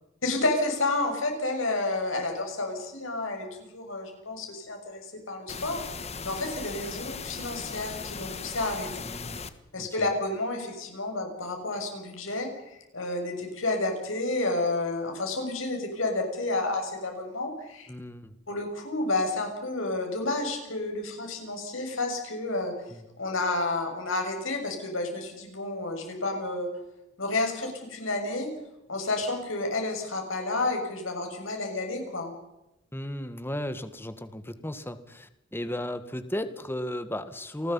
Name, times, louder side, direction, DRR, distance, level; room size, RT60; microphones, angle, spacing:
voice 1, 0.2-5.8 6.2-9.0 9.7-17.9 18.5-22.7 23.2-26.7 27.2-28.5 28.9-32.3, left 2 dB, 75° left, 3 dB, 6.9 m, -30 dB
sound 1, 5.5-9.5, left 5 dB, 30° left, 1.4 m, -38 dB
voice 2, 9.0-9.4 9.7-10.0 17.9-18.3 22.9-23.0 32.9-37.7, left 1 dB, 10° left, 11 dB, 1.6 m, -35 dB
28.5 x 20.0 x 5.6 m, 0.92 s
head